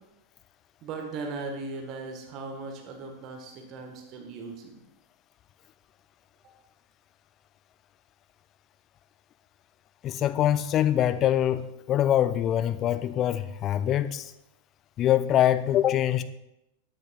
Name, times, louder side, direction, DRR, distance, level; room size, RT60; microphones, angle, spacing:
voice 1, 0.8-4.8, right 3 dB, 35° right, 1.2 m, -38 dB
voice 2, 10.0-14.3 15.0-16.2, left 11 dB, 30° left, 0.4 m, -24 dB
11.5 x 6.6 x 2.3 m
figure-of-eight pair, 90°, 0 cm